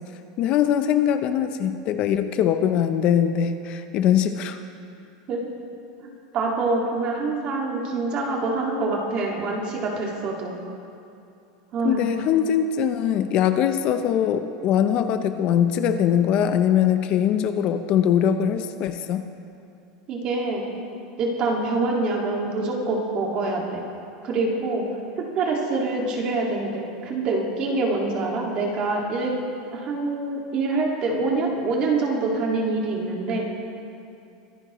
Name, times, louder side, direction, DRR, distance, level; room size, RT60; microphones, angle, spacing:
voice 1, 0.4-4.6 11.8-19.3, left 9 dB, 40° left, 9 dB, 0.6 m, -22 dB
voice 2, 6.3-10.6 11.7-12.1 20.1-20.6 21.2-23.8 24.2-24.8 25.2-29.3 29.7-33.4, right 3 dB, 35° right, -1 dB, 2.0 m, -25 dB
23.0 x 10.5 x 3.0 m, 2.6 s
supercardioid pair, 155°, 3 cm